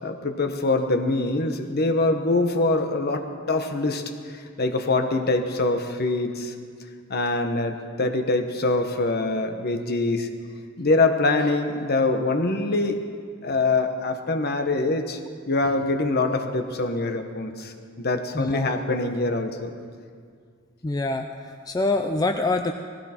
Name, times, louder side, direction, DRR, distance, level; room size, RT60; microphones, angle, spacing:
voice 1, 0.0-4.0 4.3-6.5 7.1-10.3 10.8-13.0 13.4-15.2 15.4-19.7, left 2 dB, 50° left, 5 dB, 1.2 m, -24 dB
voice 2, 18.3-18.7 20.8-22.7, left 2 dB, 20° left, 5 dB, 0.4 m, -25 dB
19.0 x 16.0 x 4.5 m, 2.1 s
head